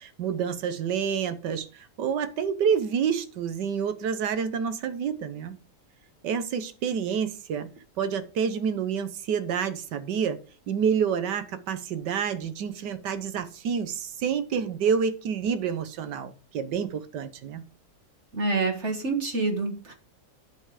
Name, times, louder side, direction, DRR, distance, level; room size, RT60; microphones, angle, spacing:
voice 1, 0.0-5.5 6.2-7.7 8.0-10.4 10.7-17.6, right 7 dB, 85° right, 1.6 m, -28 dB
voice 2, 18.3-19.9, right 3 dB, 45° right, 1.7 m, -27 dB
9.9 x 5.7 x 4.9 m
omnidirectional pair, 1.8 m